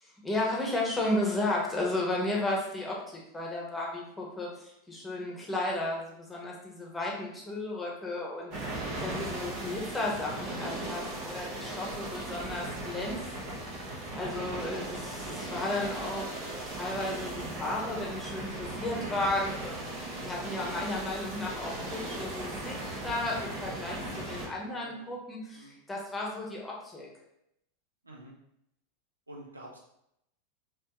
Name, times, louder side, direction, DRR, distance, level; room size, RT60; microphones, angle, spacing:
voice 1, 0.2-13.8 14.1-27.1, left 2 dB, 10° left, -2 dB, 1.0 m, -34 dB
sound 1, 8.5-24.5, right 1 dB, 50° right, 1.1 m, -37 dB
voice 2, 24.6-25.1 25.5-25.7 28.0-28.3 29.3-29.8, right 1 dB, 80° right, -2 dB, 0.7 m, -48 dB
3.3 x 3.0 x 3.0 m, 0.79 s
figure-of-eight pair, 85°, 0 cm